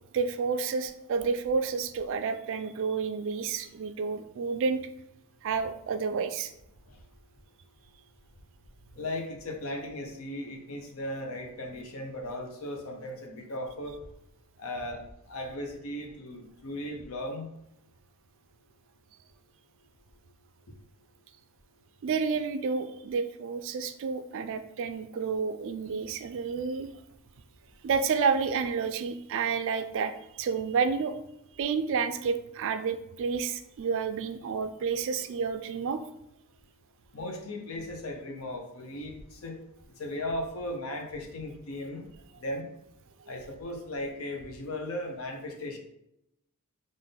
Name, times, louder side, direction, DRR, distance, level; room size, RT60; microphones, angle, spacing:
voice 1, 0.1-4.8 5.4-6.5 22.0-26.9 27.8-31.2 31.6-36.0, right 5 dB, 60° right, 9 dB, 0.3 m, -30 dB
voice 2, 9.0-14.0 14.6-15.0 15.3-17.5 37.1-39.6 40.0-42.1 42.4-42.7 43.3-45.8, left 1 dB, 70° left, 3 dB, 0.7 m, -37 dB
3.6 x 2.5 x 3.9 m, 0.81 s
head